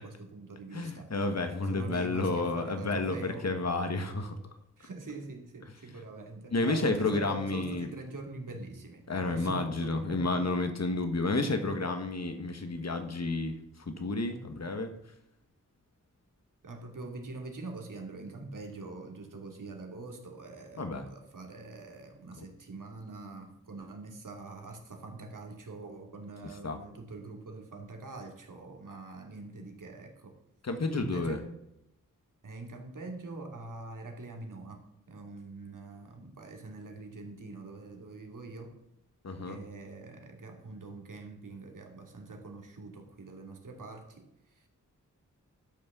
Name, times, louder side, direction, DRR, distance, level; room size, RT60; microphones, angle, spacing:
voice 1, 0.0-1.1 1.7-3.5 4.8-10.4 16.6-30.3 30.9-31.6 32.4-34.8 35.1-38.8 39.5-44.7, right 3 dB, 75° right, 2 dB, 2.6 m, -44 dB
voice 2, 0.7-4.4 6.5-7.9 9.1-13.5 13.9-14.9 20.8-21.0 26.6-26.8 30.6-31.4 39.2-39.6, left 3 dB, 55° left, 7 dB, 1.6 m, -31 dB
12.0 x 6.4 x 7.4 m, 0.81 s
wide cardioid pair, 120°, 32 cm